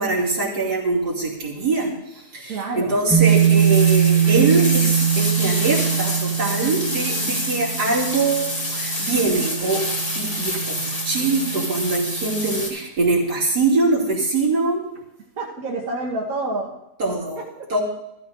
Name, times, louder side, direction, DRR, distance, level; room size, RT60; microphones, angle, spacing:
voice 1, 0.0-1.9 2.3-9.8 10.2-14.8 17.0-17.4 17.7-17.8, right 3 dB, 80° right, -5 dB, 3.3 m, -23 dB
voice 2, 2.5-2.9 7.6-7.7 15.4-16.7 17.4-17.5, right 2 dB, 60° right, -4 dB, 1.7 m, -28 dB
sound 1, 3.1-12.6, right 9 dB, 5° right, 2.9 m, -22 dB
sound 2, 3.2-12.7, left 1 dB, 35° left, 2.8 m, -28 dB
14.5 x 14.0 x 2.6 m, 0.87 s
omnidirectional pair, 1.7 m